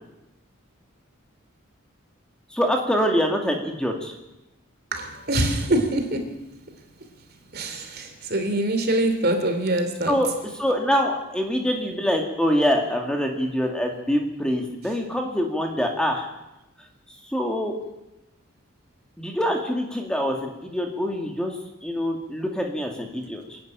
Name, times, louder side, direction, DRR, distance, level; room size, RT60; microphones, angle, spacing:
voice 1, 2.5-4.2 10.1-10.3 10.6-16.3 17.3-17.7 19.2-23.6, equal, 5° left, 2 dB, 2.1 m, -25 dB
voice 2, 4.9-6.3 7.5-10.2, right 1 dB, 50° right, 6 dB, 3.0 m, -24 dB
26.5 x 11.0 x 9.0 m, 0.94 s
head